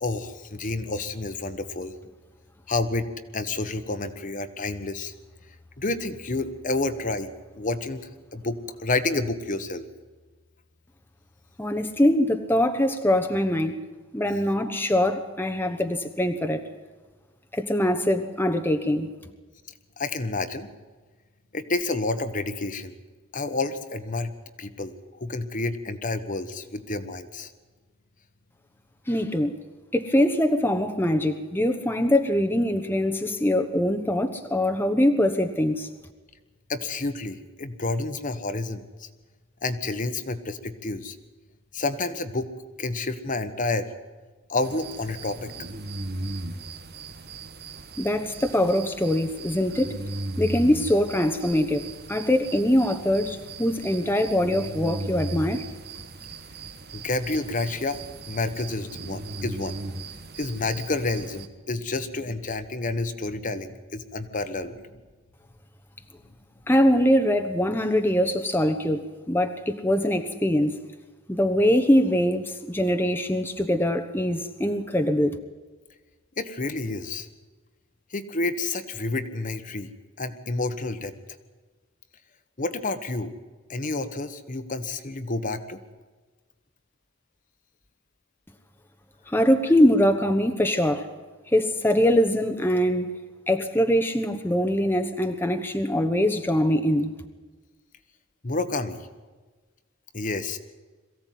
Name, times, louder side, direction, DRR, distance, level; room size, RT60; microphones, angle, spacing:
voice 1, 0.0-1.9 2.7-5.1 5.8-9.9 20.0-20.7 21.5-22.9 23.3-24.3 24.6-27.5 36.7-39.1 39.6-41.2 41.7-42.5 42.8-43.9 44.5-45.5 56.9-58.0 58.3-59.8 60.1-64.9 76.4-77.3 78.1-79.9 80.2-81.1 82.6-83.3 83.7-85.8 98.4-99.1 100.1-100.6, left 2 dB, 40° left, 9 dB, 1.4 m, -29 dB
voice 2, 11.6-13.8 14.1-16.6 17.5-19.1 29.1-29.5 29.9-35.9 48.0-49.9 50.4-55.6 66.7-70.8 71.3-75.4 89.3-91.1 91.5-93.1 93.5-97.1, left 1 dB, 10° left, 5 dB, 1.2 m, -23 dB
sound 1, 44.6-61.5, right 2 dB, 55° right, 1.4 m, -37 dB
22.5 x 15.5 x 9.4 m, 1.3 s
head